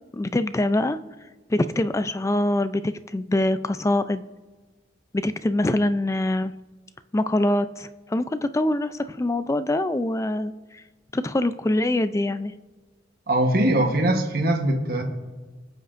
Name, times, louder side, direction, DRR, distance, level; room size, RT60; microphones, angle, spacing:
voice 1, 0.1-1.0 1.5-4.2 5.1-6.5 7.1-10.8 11.1-12.5, left 1 dB, 15° left, 12 dB, 0.3 m, -24 dB
voice 2, 13.3-15.0, right 1 dB, 50° right, 3 dB, 1.1 m, -21 dB
23.5 x 7.9 x 2.6 m, 1.3 s
head